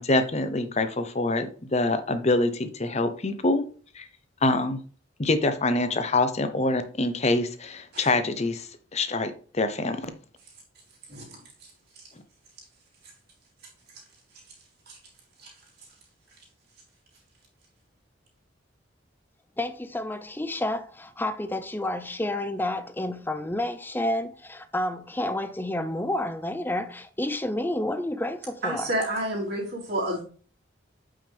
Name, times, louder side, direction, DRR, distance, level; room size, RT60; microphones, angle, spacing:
voice 1, 0.0-3.6 3.9-4.1 4.4-4.8 5.2-10.1, left 2 dB, 35° left, 0.8 m, -25 dB
voice 2, 11.1-11.4 12.0-12.1 14.9-15.0 15.4-15.5 28.6-30.2, right 1 dB, 55° right, 3.8 m, -30 dB
voice 3, 19.6-28.9, left 1 dB, 10° left, 0.5 m, -30 dB
8.6 x 5.7 x 3.5 m
head